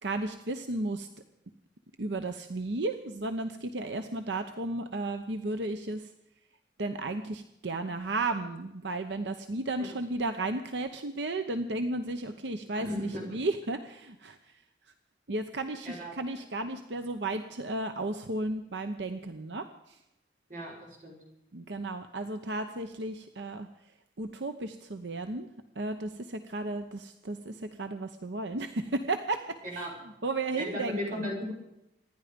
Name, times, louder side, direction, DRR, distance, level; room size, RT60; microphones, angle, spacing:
voice 1, 0.0-1.1 2.0-6.1 6.8-14.4 15.3-20.0 21.5-23.7 24.2-25.5 25.8-29.9 30.2-31.2, right 2 dB, 85° right, 7 dB, 0.9 m, -34 dB
voice 2, 12.8-13.4 15.8-16.1 20.5-20.7 21.0-21.1 29.7-29.9 30.6-31.5, left 1 dB, 50° right, -1 dB, 6.5 m, -35 dB
26.0 x 10.5 x 5.2 m, 0.86 s
head